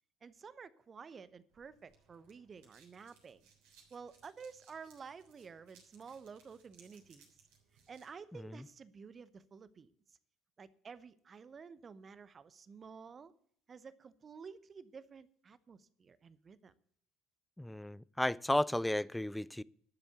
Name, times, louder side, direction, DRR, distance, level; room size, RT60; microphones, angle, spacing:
voice 1, 0.2-3.5 3.9-7.3 7.9-9.9 10.6-13.3 13.7-16.7, right 5 dB, 35° right, 0.8 m, -52 dB
sound 1, 1.5-8.1, right 6 dB, 65° right, 3.5 m, -66 dB
voice 2, 17.6-19.6, left 1 dB, 5° left, 0.4 m, -34 dB
12.0 x 7.2 x 8.1 m
figure-of-eight pair, 60°, 0 cm